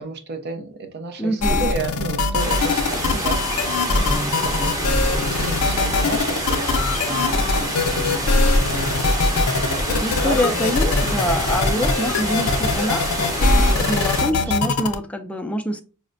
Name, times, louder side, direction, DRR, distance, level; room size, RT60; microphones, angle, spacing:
voice 1, 0.0-9.0 9.5-10.6 11.9-12.1 13.7-14.7, right 3 dB, 50° right, 0.5 m, -32 dB
voice 2, 1.2-1.7 10.0-15.8, equal, 5° left, 0.3 m, -25 dB
sound 1, 1.4-14.9, left 3 dB, 80° left, 0.5 m, -21 dB
sound 2, 2.4-14.2, equal, 15° right, 0.9 m, -27 dB
4.8 x 2.1 x 2.5 m
head